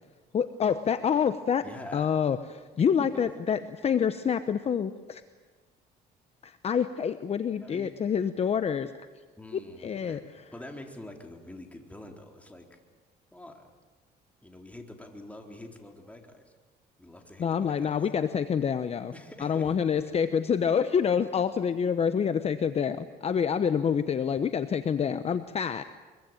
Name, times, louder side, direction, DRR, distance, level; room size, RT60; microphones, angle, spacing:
voice 1, 0.3-1.6 1.9-5.2 6.4-8.9 9.5-10.2 17.4-19.1 19.4-25.8, left 7 dB, 40° left, 11 dB, 1.0 m, -27 dB
voice 2, 1.6-2.1 3.0-3.3 7.6-7.9 9.4-12.8 13.3-13.7 14.4-16.5 17.0-18.0 19.1-19.8, left 1 dB, 10° left, 3 dB, 3.9 m, -46 dB
24.0 x 23.0 x 9.1 m, 1.3 s
cardioid pair, 110°, 17 cm